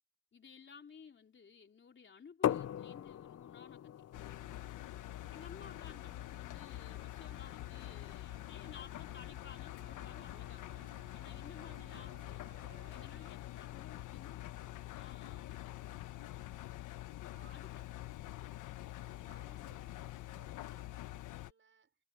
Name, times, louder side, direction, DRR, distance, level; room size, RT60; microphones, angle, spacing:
voice 1, 0.3-10.7 11.1-16.1 17.5-17.8, left 6 dB, 40° left, 3.4 m, -56 dB
sound 1, 2.4-8.1, left 10 dB, 55° left, 0.9 m, -41 dB
Engine, 4.1-21.5, left 15 dB, 85° left, 1.3 m, -46 dB
sound 2, 4.9-13.3, right 10 dB, 70° right, 2.1 m, -65 dB
voice 2, 17.3-22.0, right 6 dB, 40° right, 6.2 m, -68 dB
cardioid pair, 90°, 30 cm